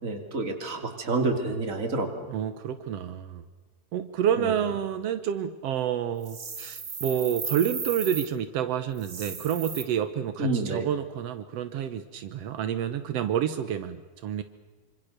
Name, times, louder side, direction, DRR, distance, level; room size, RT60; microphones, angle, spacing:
voice 1, 0.0-2.3 4.4-4.5 10.4-10.9, right 3 dB, 25° right, 4 dB, 2.6 m, -28 dB
voice 2, 2.3-3.4 3.9-14.4, right 9 dB, 85° right, 10 dB, 1.4 m, -29 dB
sound 1, 6.2-8.3 8.9-9.8, right 5 dB, 40° right, 1.1 m, -35 dB
26.0 x 26.0 x 6.7 m, 1.3 s
omnidirectional pair, 4.3 m